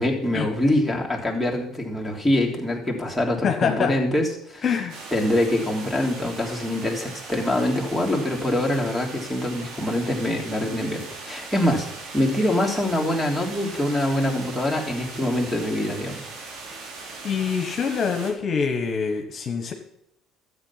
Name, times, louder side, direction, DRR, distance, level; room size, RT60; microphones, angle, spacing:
voice 1, 0.0-4.6 5.1-11.9 12.1-16.2, left 1 dB, ahead, 1 dB, 3.3 m, -24 dB
voice 2, 3.4-3.9 4.6-5.0 17.2-19.7, left 6 dB, 45° left, 5 dB, 1.4 m, -25 dB
sound 1, 4.9-18.3, right 3 dB, 65° right, 3.2 m, -39 dB
13.0 x 7.8 x 5.9 m, 0.78 s
hypercardioid pair, 60°, 0 cm